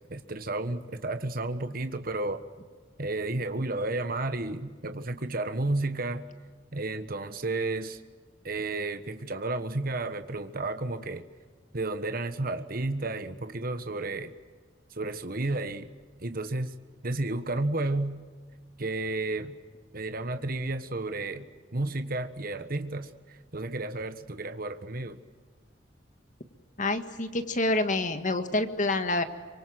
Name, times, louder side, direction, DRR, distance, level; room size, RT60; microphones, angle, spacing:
voice 1, 0.1-2.4 3.0-6.3 6.7-8.0 8.4-11.2 11.7-14.3 14.9-15.9 16.2-16.7 17.0-18.2 18.8-19.6 19.9-25.2, right 2 dB, 50° right, 9 dB, 1.4 m, -32 dB
voice 2, 26.8-29.2, left 2 dB, 45° left, 8 dB, 1.7 m, -27 dB
27.0 x 25.0 x 7.8 m, 1.5 s
head